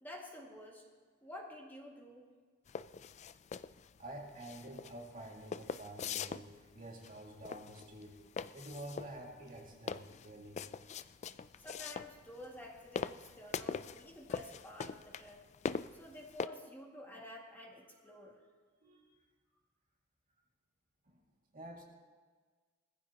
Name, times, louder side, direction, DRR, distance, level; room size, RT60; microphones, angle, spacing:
voice 1, 0.0-0.8 1.2-2.3 11.6-15.4 15.9-18.3, left 1 dB, 10° left, -2 dB, 2.0 m, -50 dB
sound 1, 2.7-16.5, left 6 dB, 35° left, 0.3 m, -42 dB
voice 2, 4.0-8.2 8.5-10.6 18.8-19.1 21.0-21.2 21.5-21.8, right 1 dB, 40° right, -1 dB, 2.2 m, -49 dB
21.0 x 15.0 x 2.9 m, 1.5 s
head